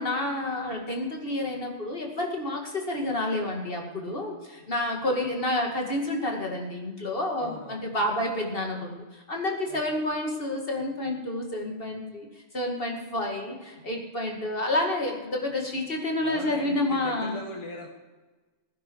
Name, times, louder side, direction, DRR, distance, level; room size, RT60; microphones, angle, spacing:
voice 1, 0.0-12.3 12.5-17.4, left 1 dB, 50° left, 1 dB, 2.6 m, -29 dB
voice 2, 7.4-7.8 9.7-9.8 16.2-17.9, left 1 dB, 25° left, 1 dB, 1.8 m, -39 dB
17.0 x 10.0 x 4.7 m, 1.2 s
omnidirectional pair, 1.2 m